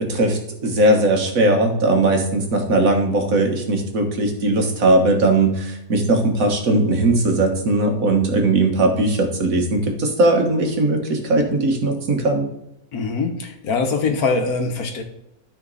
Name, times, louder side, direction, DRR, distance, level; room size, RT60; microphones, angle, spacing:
voice 1, 0.0-12.4, right 2 dB, 65° right, 3 dB, 1.8 m, -19 dB
voice 2, 12.9-15.0, left 4 dB, 80° left, 5 dB, 1.7 m, -23 dB
13.0 x 4.5 x 4.1 m, 0.82 s
omnidirectional pair, 1.6 m